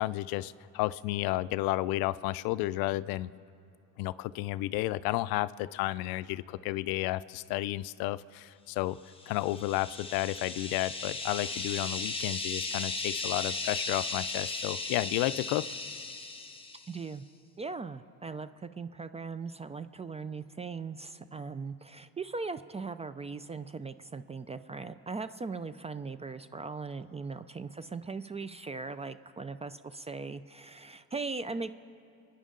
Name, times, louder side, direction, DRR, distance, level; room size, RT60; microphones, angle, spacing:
voice 1, 0.0-3.3 4.0-9.0 9.3-15.7, left 17 dB, 80° left, 17 dB, 0.5 m, -32 dB
sound 1, 9.2-17.0, left 3 dB, 15° left, 1.1 m, -36 dB
voice 2, 16.9-17.2 17.6-31.7, right 4 dB, 20° right, 12 dB, 0.3 m, -39 dB
28.5 x 9.9 x 3.8 m, 2.8 s
cardioid pair, 100°, 36 cm